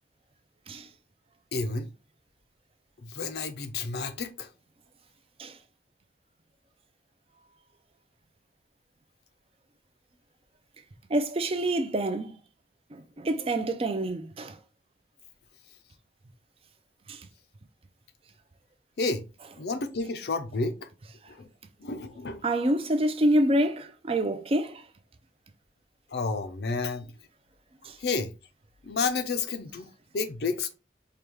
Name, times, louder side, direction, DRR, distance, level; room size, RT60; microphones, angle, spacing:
voice 1, 1.5-1.9 3.0-4.5 13.2-13.6 19.0-19.3 19.6-20.9 21.3-21.5 21.8-22.4 26.1-27.1 28.0-28.3 28.8-30.7, left 4 dB, 65° left, 0.5 m, -31 dB
voice 2, 11.1-12.4 12.9-14.6 17.1-17.3 22.4-24.8 27.8-28.0, right 1 dB, 30° right, 0.4 m, -27 dB
4.6 x 2.3 x 3.4 m
head